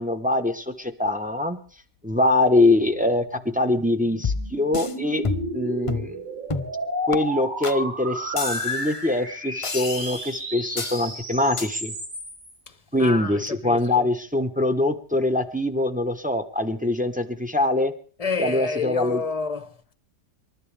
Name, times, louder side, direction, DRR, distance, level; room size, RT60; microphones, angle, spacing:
voice 1, 0.0-1.6 2.0-5.3 5.5-6.2 7.1-11.9 12.9-17.9 18.4-19.2, left 2 dB, 5° right, 0.8 m, -23 dB
sound 1, 2.8-12.5, equal, 30° right, 7.4 m, -33 dB
sound 2, 4.2-4.9 5.2-5.6 5.9-6.1 6.5-6.8 7.1-7.2 7.6-7.8 8.4-9.0 9.6-10.3 10.8-11.1 11.6-11.7, left 4 dB, 45° left, 0.4 m, -29 dB
voice 2, 12.7-14.1 18.2-19.9, left 4 dB, 25° left, 0.9 m, -29 dB
27.5 x 12.0 x 3.4 m
omnidirectional pair, 1.8 m